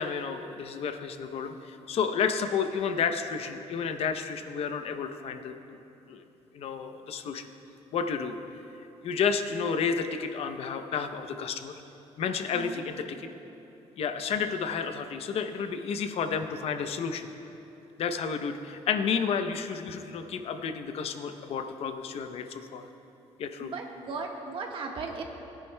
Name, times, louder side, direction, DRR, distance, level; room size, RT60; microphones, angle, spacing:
voice 1, 0.0-5.8 6.1-6.2 6.5-7.4 7.9-8.4 9.0-11.7 12.2-13.3 14.0-17.3 18.0-22.8 23.4-23.7, left 6 dB, 60° left, 8 dB, 0.6 m, -31 dB
voice 2, 23.6-25.2, right 4 dB, 50° right, 1 dB, 1.4 m, -36 dB
21.0 x 10.0 x 2.2 m, 3.0 s
cardioid pair, 120°, 11 cm